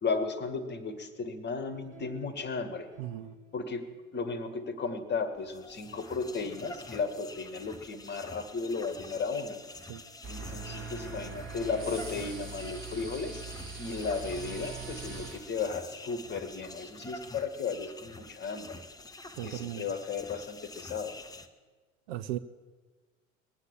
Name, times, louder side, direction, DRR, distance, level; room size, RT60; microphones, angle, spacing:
voice 1, 0.0-2.9 3.5-3.9 4.1-9.6 10.3-13.4 13.8-18.8 19.4-21.2, left 4 dB, 25° left, 1.4 m, -35 dB
sound 1, 1.6-4.5 5.8-10.3 11.6-12.8, right 1 dB, 65° right, 2.7 m, -55 dB
voice 2, 3.0-3.3 9.9-10.0 19.4-19.8 22.1-22.4, right 14 dB, 50° right, 0.6 m, -36 dB
sound 2, 5.4-21.5, left 2 dB, 10° left, 0.7 m, -47 dB
sound 3, 10.2-15.4, right 4 dB, 30° right, 3.3 m, -42 dB
20.0 x 8.2 x 7.1 m
figure-of-eight pair, 75°, 41 cm